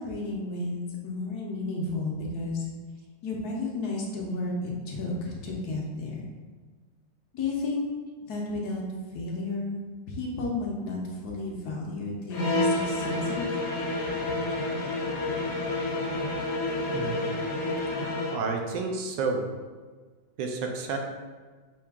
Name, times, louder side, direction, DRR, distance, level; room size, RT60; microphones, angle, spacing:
voice 1, 0.0-2.7 3.2-6.2 7.3-7.8 8.3-8.8 9.1-9.8 10.1-13.4 14.2-14.3, left 2 dB, 65° left, -2 dB, 1.2 m, -32 dB
sound 1, 12.3-18.5, left 2 dB, 85° left, 0.5 m, -29 dB
voice 2, 16.9-17.3 18.3-19.5 20.4-21.0, right 4 dB, 80° right, 3 dB, 1.3 m, -30 dB
5.7 x 2.4 x 3.4 m, 1.4 s
omnidirectional pair, 1.9 m